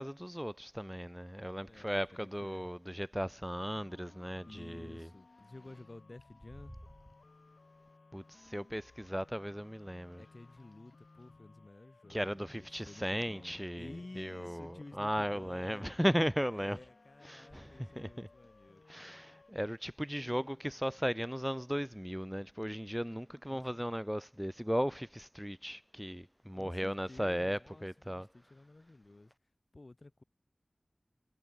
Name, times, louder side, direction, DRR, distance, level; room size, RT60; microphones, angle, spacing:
voice 1, 0.0-5.1 8.1-10.2 12.1-13.9 14.2-16.8 17.3-18.3 18.9-28.3, equal, ahead, 0.6 m, -36 dB
voice 2, 1.6-2.7 4.4-6.8 10.2-16.1 16.5-19.2 20.1-20.6 23.5-24.3 26.5-29.3 29.7-30.2, left 2 dB, 45° left, 3.4 m, -53 dB
sound 1, 3.5-19.5, left 3 dB, 75° left, 4.9 m, -61 dB
wide cardioid pair, 55°, 0 cm